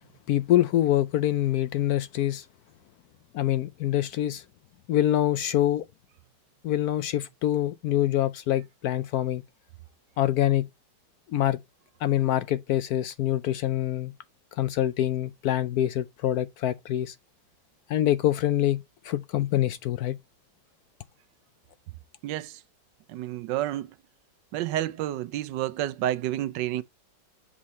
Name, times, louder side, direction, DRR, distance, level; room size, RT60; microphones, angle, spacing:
voice 1, 0.3-2.4 3.3-4.4 4.9-5.8 6.6-9.4 10.2-10.7 11.3-11.6 12.0-14.1 14.6-17.1 17.9-20.2, left 12 dB, 70° left, 0.9 m, -25 dB
voice 2, 22.2-22.6 23.1-24.0 24.5-26.8, right 13 dB, 85° right, 1.3 m, -30 dB
7.4 x 4.0 x 4.2 m
omnidirectional pair, 1.9 m